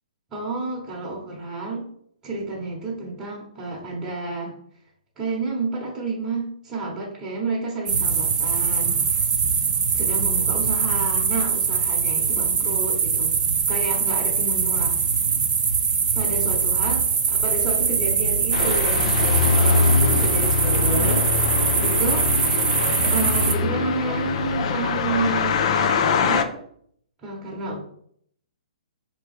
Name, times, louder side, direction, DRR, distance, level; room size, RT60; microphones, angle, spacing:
voice 1, 0.3-1.9 2.2-4.5 5.2-9.3 9.9-13.3 13.7-15.2 16.1-19.2 19.5-22.7 23.1-26.5 27.2-27.8, right 3 dB, 15° right, -6 dB, 1.0 m, -30 dB
sound 1, 7.9-23.5, right 6 dB, 70° right, 0.6 m, -22 dB
sound 2, 18.5-26.4, left 5 dB, 45° left, 0.4 m, -23 dB
4.6 x 3.0 x 3.2 m, 0.66 s
hypercardioid pair, 150°, 4 cm